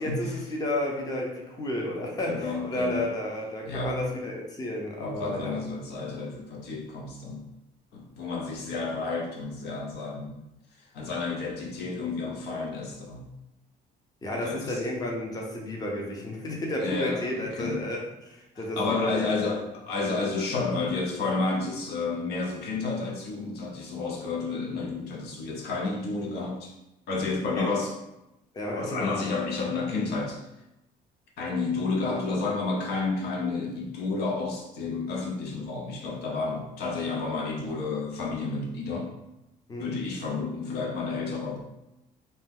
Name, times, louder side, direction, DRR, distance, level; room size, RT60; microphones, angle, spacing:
voice 1, 0.0-5.6 14.2-18.0 18.2-19.7 27.5-27.7 28.5-29.1 39.7-39.9, left 1 dB, 20° left, -1 dB, 0.6 m, -32 dB
voice 2, 2.3-3.1 3.6-4.0 5.0-7.5 7.9-10.4 10.8-13.3 14.4-14.8 16.8-17.9 18.5-26.7 27.1-27.9 28.7-30.4 31.4-39.1 39.8-41.6, left 3 dB, 75° left, -2 dB, 0.7 m, -31 dB
2.7 x 2.2 x 3.5 m, 0.92 s
cardioid pair, 110°, 17 cm